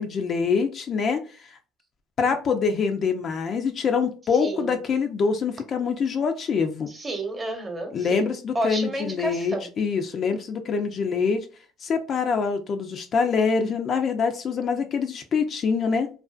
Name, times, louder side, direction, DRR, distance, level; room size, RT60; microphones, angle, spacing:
voice 1, 0.0-1.6 2.2-6.9 7.9-11.5 11.8-16.1, left 5 dB, 45° left, 6 dB, 0.4 m, -25 dB
voice 2, 4.4-4.7 6.9-9.7, right 2 dB, 25° right, 4 dB, 0.9 m, -31 dB
2.5 x 2.3 x 2.3 m, 0.36 s
supercardioid pair, 75°, 0 cm